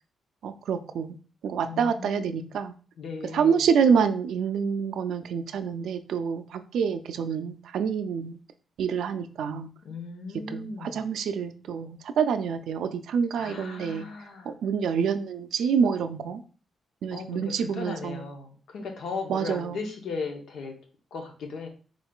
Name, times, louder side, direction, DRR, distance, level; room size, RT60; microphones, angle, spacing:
voice 1, 0.4-1.2 1.4-2.7 3.3-8.4 8.8-9.7 10.5-14.0 14.5-16.4 17.0-18.2 19.3-19.8, right 6 dB, 80° right, 10 dB, 0.3 m, -27 dB
voice 2, 1.6-2.5 3.0-3.7 9.8-11.1 13.4-14.5 17.1-20.8 21.1-21.7, left 4 dB, 80° left, 3 dB, 0.8 m, -37 dB
3.9 x 3.6 x 2.3 m, 0.39 s
cardioid pair, 125°, 0 cm